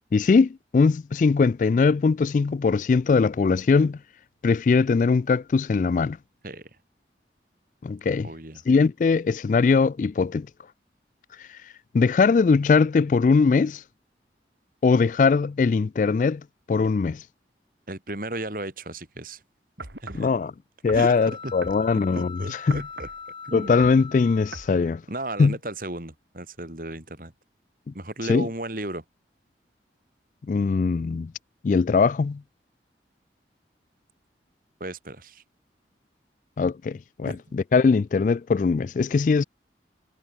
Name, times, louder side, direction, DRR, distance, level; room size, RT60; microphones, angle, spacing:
voice 1, 0.1-4.0 4.4-6.2 7.8-8.3 8.7-10.5 11.9-13.8 14.8-16.4 16.7-17.2 20.1-20.5 20.8-22.8 23.5-25.0 25.4-25.5 28.3-28.5 30.5-31.3 31.6-32.4 36.6-39.4, left 4 dB, 45° left, 0.3 m, -21 dB
voice 2, 8.2-8.6 17.9-19.4 20.0-20.3 20.9-21.5 22.1-23.1 23.4-23.7 25.1-27.3 27.9-29.0 34.8-35.4 37.3-37.6, right 1 dB, 50° right, 3.3 m, -35 dB
sound 1, 19.8-20.3 20.9-22.2 22.7-23.2 23.7-24.0 24.5-24.7 25.4-25.5, right 2 dB, 75° right, 3.4 m, -39 dB
sound 2, 20.9-25.0, left 5 dB, 30° left, 4.0 m, -41 dB
head